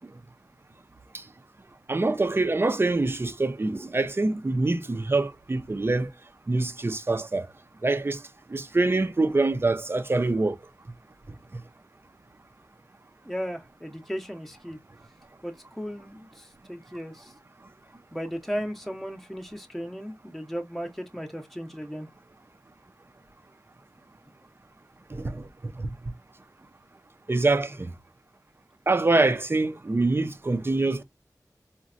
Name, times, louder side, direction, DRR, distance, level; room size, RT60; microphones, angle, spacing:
voice 1, 1.9-6.1 6.5-7.5 7.8-8.2 8.5-10.6 11.5-11.6 25.1-25.5 25.8-25.9 27.3-27.9 28.9-31.0, right 2 dB, 35° right, 0.5 m, -25 dB
voice 2, 13.2-14.8 15.4-17.3 18.1-22.1, equal, ahead, 0.7 m, -35 dB
3.9 x 2.1 x 2.4 m
wide cardioid pair, 60°, 7 cm